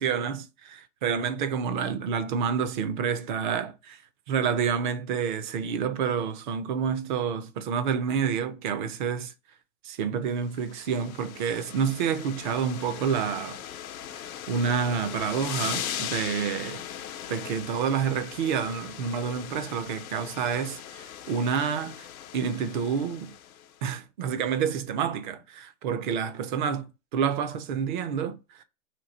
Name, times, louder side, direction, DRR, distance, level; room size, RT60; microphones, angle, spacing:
voice 1, 0.0-4.0 4.3-9.3 9.8-13.6 14.5-16.8 17.3-22.1 22.3-23.3 23.8-28.6, right 7 dB, 40° right, 0.4 m, -28 dB
sound 1, 10.5-23.7, left 10 dB, 80° left, 0.7 m, -39 dB
2.9 x 2.6 x 3.9 m
hypercardioid pair, 140°, 42 cm